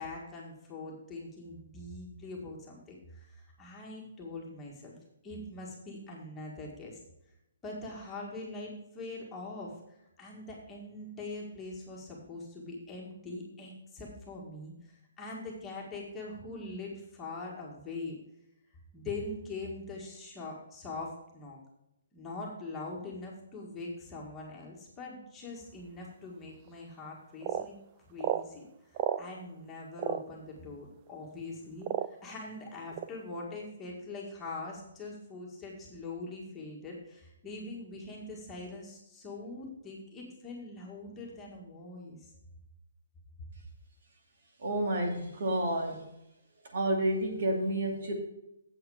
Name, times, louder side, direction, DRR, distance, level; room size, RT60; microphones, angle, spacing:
voice 1, 0.0-4.9 5.2-7.0 7.6-18.2 18.9-21.6 22.1-27.7 28.1-28.6 29.2-42.3, left 2 dB, 10° left, -3 dB, 1.8 m, -43 dB
sound 1, 26.7-26.8 27.4-27.7 28.2-28.4 29.0-29.2 30.0-30.2 31.1-31.2 31.8-32.3 32.9-33.1, right 12 dB, 25° right, 0.4 m, -31 dB
voice 2, 44.6-46.0 46.7-48.1, right 1 dB, 55° right, 2 dB, 2.5 m, -30 dB
8.0 x 7.8 x 4.9 m, 0.83 s
hypercardioid pair, 165°, 0 cm